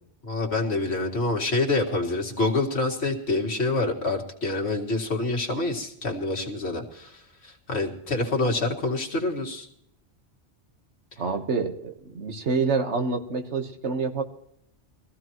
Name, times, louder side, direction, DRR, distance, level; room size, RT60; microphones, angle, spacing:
voice 1, 0.2-9.7, left 2 dB, 70° left, 1 dB, 2.2 m, -27 dB
voice 2, 11.2-14.2, right 4 dB, 75° right, 6 dB, 1.7 m, -27 dB
22.5 x 15.0 x 3.1 m, 0.76 s
omnidirectional pair, 1.2 m